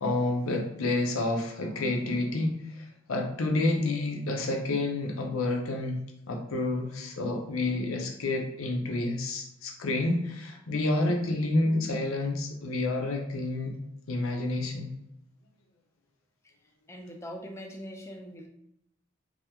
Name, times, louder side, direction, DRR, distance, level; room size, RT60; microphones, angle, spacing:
voice 1, 0.0-2.6 3.1-6.0 6.3-13.7 14.1-14.9, left 2 dB, 85° left, 2 dB, 0.6 m, -29 dB
voice 2, 16.9-18.5, equal, 15° left, 2 dB, 0.3 m, -42 dB
3.5 x 2.1 x 2.9 m, 0.82 s
head